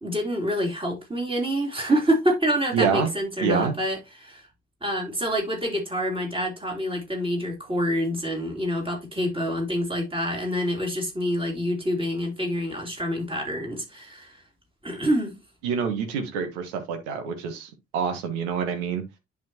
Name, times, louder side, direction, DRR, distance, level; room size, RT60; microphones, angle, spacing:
voice 1, 0.0-4.5 4.8-14.4 14.8-15.3, equal, 15° right, 3.5 m, -27 dB
voice 2, 2.7-3.1 3.4-3.7 15.6-19.0, right 6 dB, 70° right, 1.3 m, -26 dB
10.5 x 4.0 x 2.9 m
figure-of-eight pair, 45°, 35 cm